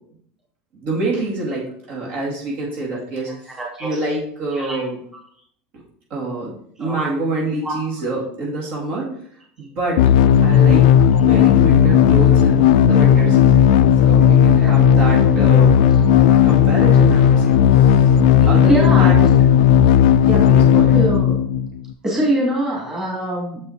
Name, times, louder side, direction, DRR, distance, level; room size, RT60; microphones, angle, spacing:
voice 1, 0.7-3.3 3.8-5.0 6.1-6.5 6.8-9.1 9.6-10.0 10.4-13.6 14.0-15.8 16.2-18.1 18.4-19.2 20.2-20.9, right 2 dB, 50° right, -3 dB, 2.2 m, -26 dB
voice 2, 3.5-4.0 4.5-4.8 6.8-7.1 7.6-7.8 11.1-11.2 14.6-14.7 18.4-19.3 20.9-21.4 22.0-23.6, right 1 dB, 15° right, -3 dB, 2.9 m, -23 dB
sound 1, 10.0-21.9, left 9 dB, 75° left, 0.4 m, -13 dB
sound 2, 14.7-19.8, left 2 dB, 5° left, 1.2 m, -30 dB
7.1 x 5.5 x 4.2 m, 0.65 s
supercardioid pair, 145°, 4 cm